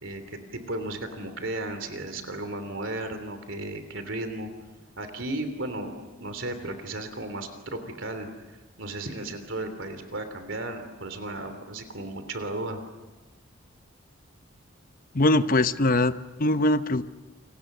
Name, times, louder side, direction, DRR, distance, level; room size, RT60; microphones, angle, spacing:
voice 1, 0.0-4.5 5.0-5.9 6.2-12.8, right 2 dB, 65° right, 8 dB, 3.2 m, -35 dB
voice 2, 15.1-17.0, left 2 dB, 40° left, 11 dB, 0.9 m, -22 dB
29.5 x 25.0 x 6.8 m, 1.2 s
head